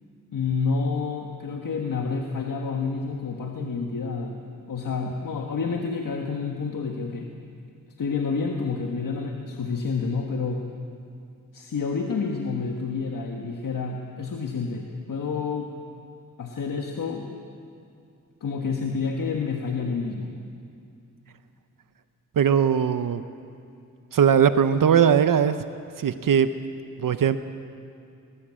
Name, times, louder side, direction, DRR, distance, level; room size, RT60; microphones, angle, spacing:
voice 1, 0.3-7.3 8.0-10.6 11.5-15.7 16.4-17.3 18.4-20.3, left 5 dB, 75° left, 2 dB, 1.5 m, -29 dB
voice 2, 22.4-23.2 24.1-25.5 26.0-26.5 27.0-27.4, right 8 dB, 80° right, 11 dB, 0.8 m, -19 dB
20.0 x 20.0 x 7.5 m, 2.5 s
wide cardioid pair, 115°, 33 cm